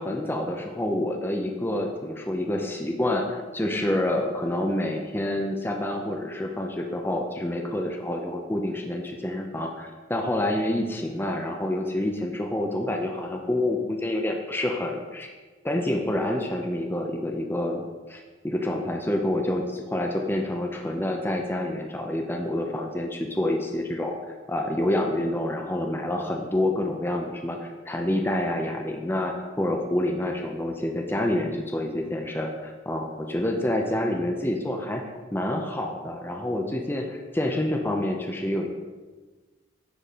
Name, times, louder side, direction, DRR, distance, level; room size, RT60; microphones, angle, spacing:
voice 1, 0.0-15.3 15.6-17.8 18.1-24.1 24.5-38.7, left 1 dB, 10° left, 2 dB, 0.7 m, -28 dB
10.0 x 3.9 x 6.8 m, 1.3 s
head